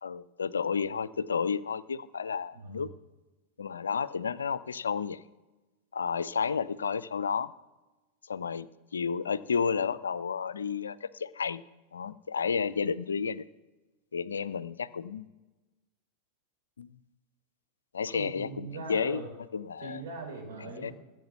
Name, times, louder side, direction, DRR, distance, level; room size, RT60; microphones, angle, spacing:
voice 1, 0.0-2.9 3.6-5.2 5.9-7.5 8.3-8.7 8.9-11.6 11.9-13.4 14.1-15.3 16.8-16.9 17.9-19.2 19.5-20.0 20.8-20.9, left 6 dB, 70° left, 18 dB, 0.5 m, -31 dB
voice 2, 2.5-2.9 18.1-19.3 19.8-20.9, right 4 dB, 60° right, 2 dB, 4.8 m, -41 dB
14.0 x 7.5 x 7.0 m, 1.2 s
figure-of-eight pair, 90°, 0 cm